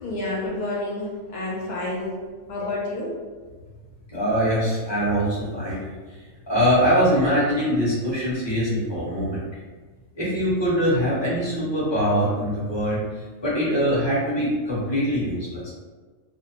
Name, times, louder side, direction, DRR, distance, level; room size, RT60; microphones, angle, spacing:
voice 1, 0.0-2.2 2.5-3.2, left 2 dB, 80° left, -5 dB, 0.4 m, -29 dB
voice 2, 4.1-5.9 6.5-9.4 10.2-13.0 13.4-15.7, equal, 25° left, -9 dB, 0.9 m, -23 dB
2.5 x 2.0 x 2.8 m, 1.4 s
omnidirectional pair, 1.4 m